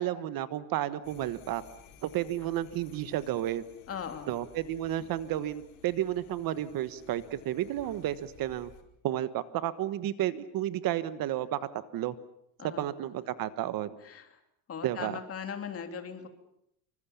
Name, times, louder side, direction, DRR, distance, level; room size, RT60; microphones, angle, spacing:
voice 1, 0.0-1.6 2.0-3.6 4.3-8.7 9.0-11.6 11.9-12.1 12.6-14.0 14.8-15.2, right 12 dB, 55° right, 14 dB, 1.4 m, -32 dB
sound 1, 1.0-8.8, left 7 dB, 80° left, 5.0 m, -56 dB
voice 2, 3.9-4.3 12.6-13.0 14.0-14.2 14.7-16.3, left 7 dB, 30° left, 6 dB, 3.0 m, -39 dB
27.0 x 24.5 x 7.1 m, 0.76 s
cardioid pair, 160°, 43 cm